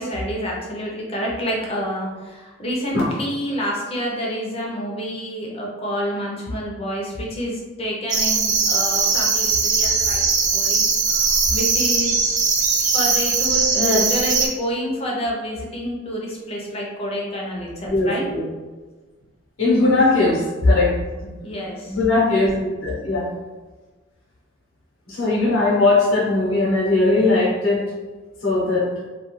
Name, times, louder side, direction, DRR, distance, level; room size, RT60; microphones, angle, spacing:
voice 1, 0.0-12.2 12.4-18.2 19.6-19.9 21.4-22.0, equal, 30° left, -3 dB, 0.6 m, -28 dB
sound 1, 8.1-14.5, right 4 dB, 40° right, 0.4 m, -20 dB
voice 2, 17.8-18.4 19.6-20.9 21.9-23.3 25.1-27.8 28.4-28.9, left 2 dB, 90° left, -6 dB, 0.8 m, -19 dB
2.3 x 2.3 x 3.0 m, 1.3 s
head